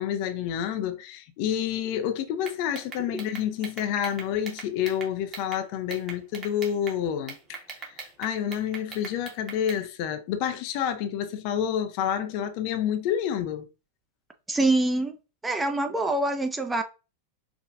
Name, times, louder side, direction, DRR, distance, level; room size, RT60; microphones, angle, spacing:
voice 1, 0.0-7.6 7.9-13.7, left 9 dB, 45° left, 0.5 m, -29 dB
sound 1, 2.4-5.6 5.9-7.0 7.3-9.8, right 4 dB, 30° right, 1.3 m, -40 dB
voice 2, 14.5-15.1 15.4-16.8, right 2 dB, 10° right, 0.5 m, -25 dB
4.6 x 2.4 x 2.5 m
figure-of-eight pair, 90°, 0 cm